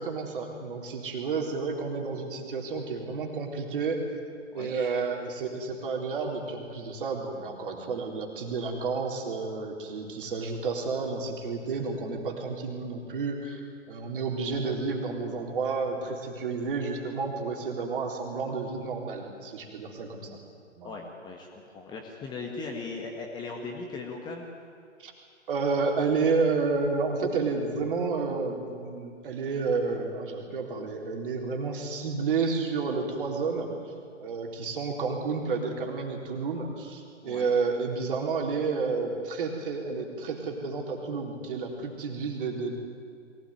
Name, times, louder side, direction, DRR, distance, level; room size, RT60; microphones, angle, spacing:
voice 1, 0.0-4.0 4.5-20.4 20.8-21.0 25.0-25.1 25.5-33.7 34.2-42.8, right 4 dB, 45° right, 1 dB, 3.9 m, -30 dB
voice 2, 4.5-4.9 20.8-24.4 37.2-37.5, left 4 dB, 10° left, 1 dB, 1.6 m, -38 dB
22.5 x 17.0 x 9.3 m, 2.3 s
figure-of-eight pair, 130°, 37 cm